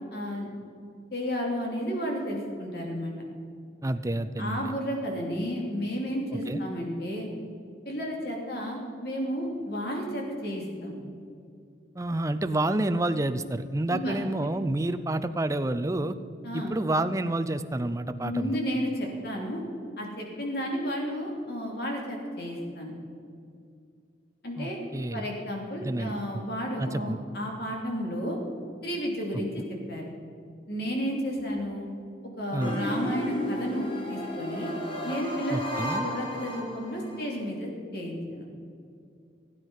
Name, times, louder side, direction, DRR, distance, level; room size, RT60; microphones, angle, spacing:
voice 1, 0.1-0.5 1.1-3.1 4.4-7.3 7.8-10.9 13.9-14.2 16.4-16.7 18.2-19.6 20.0-22.9 24.4-24.8 25.1-28.4 28.8-29.6 29.9-30.1 30.7-31.9 32.4-34.7 35.0-38.4, equal, 55° left, 0 dB, 2.9 m, -32 dB
voice 2, 3.8-4.7 6.5-6.6 12.0-16.2 16.5-18.6 24.6-25.2 25.8-26.4 26.8-27.2 29.6-29.7 32.5-32.8 35.5-36.0, right 1 dB, 15° right, 10 dB, 0.4 m, -29 dB
sound 1, 32.6-37.2, equal, 30° left, 1.8 m, -34 dB
16.5 x 9.4 x 5.5 m, 2.4 s
head